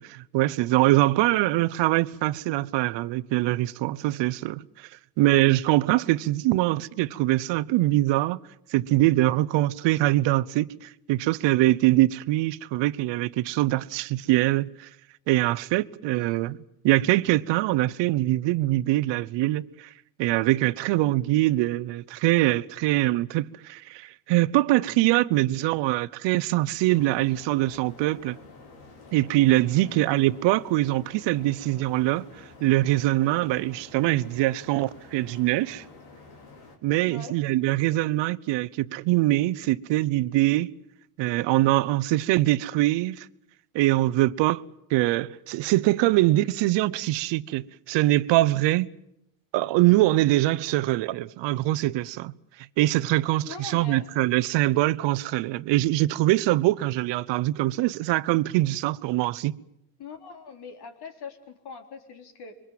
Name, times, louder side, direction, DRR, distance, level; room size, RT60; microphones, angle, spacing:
voice 1, 0.0-4.9 5.2-8.4 8.7-14.9 15.3-16.6 16.8-19.9 20.2-28.4 29.1-32.2 32.6-35.8 36.8-40.7 41.2-43.3 43.7-44.6 44.9-48.9 49.5-52.3 52.8-59.6, right 17 dB, 65° right, 1.0 m, -23 dB
voice 2, 16.1-16.5 29.8-30.0 37.0-37.4 53.4-54.0 54.5-54.6 60.0-62.6, left 5 dB, 55° left, 4.0 m, -42 dB
sound 1, 26.9-36.8, left 3 dB, 85° left, 4.5 m, -49 dB
26.0 x 22.5 x 7.6 m
supercardioid pair, 90°, 47 cm